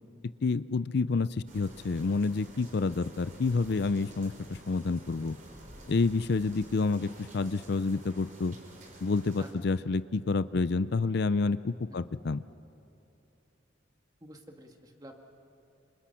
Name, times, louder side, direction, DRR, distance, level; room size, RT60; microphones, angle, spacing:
voice 1, 0.4-1.3 1.5-4.3 4.7-5.4 5.9-8.6 9.0-12.4, left 4 dB, 60° left, 15 dB, 0.5 m, -28 dB
sound 1, 1.5-9.5, right 1 dB, 45° right, 4.1 m, -51 dB
voice 2, 14.2-15.2, right 1 dB, 20° right, 3 dB, 1.8 m, -49 dB
28.0 x 27.0 x 5.8 m, 2.9 s
head